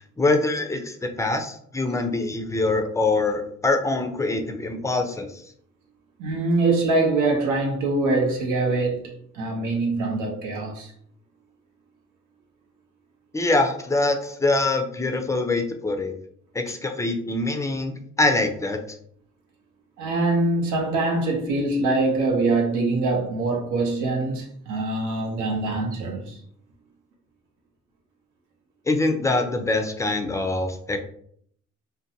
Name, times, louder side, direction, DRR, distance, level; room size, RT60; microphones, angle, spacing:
voice 1, 0.2-5.4 13.3-16.1 16.5-18.8 28.9-31.0, left 2 dB, 10° left, 0.3 m, -24 dB
voice 2, 6.2-10.9 20.0-26.4, right 2 dB, 85° right, 0.7 m, -24 dB
2.5 x 2.1 x 2.7 m
cardioid pair, 90°, 30 cm